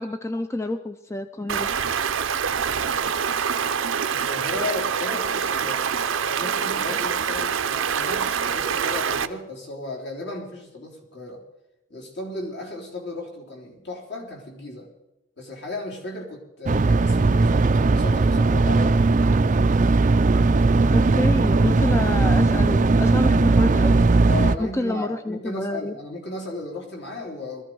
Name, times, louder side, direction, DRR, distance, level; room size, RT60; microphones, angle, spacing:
voice 1, 0.0-1.7 20.9-24.1 24.6-26.0, left 1 dB, 15° left, 9 dB, 0.5 m, -28 dB
Stream, 1.5-9.3, right 7 dB, 80° right, 0.7 m, -25 dB
voice 2, 4.1-5.9 6.2-11.4 11.9-14.9 15.4-19.3 24.3-27.6, left 2 dB, 60° left, 0 dB, 3.5 m, -35 dB
sound 1, 16.7-24.6, right 3 dB, 40° right, 0.4 m, -18 dB
20.5 x 14.0 x 4.7 m, 0.94 s
head